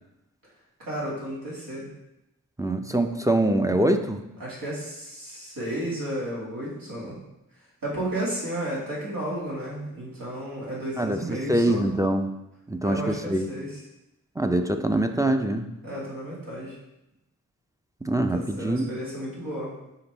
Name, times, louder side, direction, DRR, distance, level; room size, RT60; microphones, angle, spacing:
voice 1, 0.8-1.9 4.4-7.2 7.8-11.8 12.8-13.8 15.8-16.8 18.3-19.8, right 1 dB, 85° right, -7 dB, 2.1 m, -33 dB
voice 2, 2.6-4.2 11.0-12.3 12.7-13.5 14.4-15.7 18.0-18.9, right 1 dB, 10° right, 5 dB, 0.4 m, -24 dB
5.7 x 5.1 x 3.4 m, 0.92 s
wide cardioid pair, 65°, 33 cm